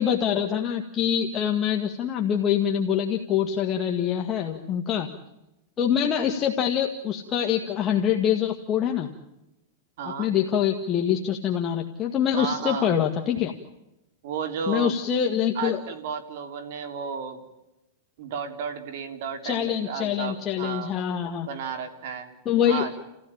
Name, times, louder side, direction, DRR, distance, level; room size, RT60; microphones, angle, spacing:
voice 1, 0.0-5.1 5.8-9.1 10.2-13.5 14.7-15.8 19.4-21.5 22.5-22.9, left 9 dB, 25° left, 2 dB, 1.8 m, -25 dB
voice 2, 10.0-10.3 12.4-12.9 14.2-15.0 15.6-17.4 18.2-20.9 21.4-22.3 22.7-22.9, right 7 dB, 65° right, 7 dB, 3.5 m, -33 dB
30.0 x 15.5 x 8.8 m, 0.95 s
supercardioid pair, 140°, 0 cm